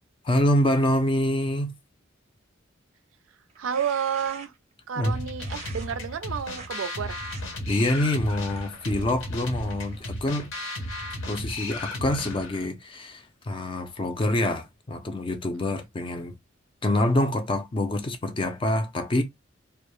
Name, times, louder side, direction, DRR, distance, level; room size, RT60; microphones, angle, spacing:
voice 1, 0.2-1.7 5.0-5.2 7.7-10.5 11.3-16.3 16.8-19.2, left 1 dB, 25° left, 0.4 m, -26 dB
sound 1, 3.5-4.7 5.4-5.9 6.4-6.7 7.1-7.4 8.0-10.6, right 4 dB, 35° right, 0.5 m, -47 dB
voice 2, 3.6-4.5 4.9-7.2 15.7-15.8, right 7 dB, 85° right, 0.4 m, -30 dB
sound 2, 5.0-12.7, left 1 dB, 75° left, 0.7 m, -35 dB
2.2 x 2.0 x 2.9 m
head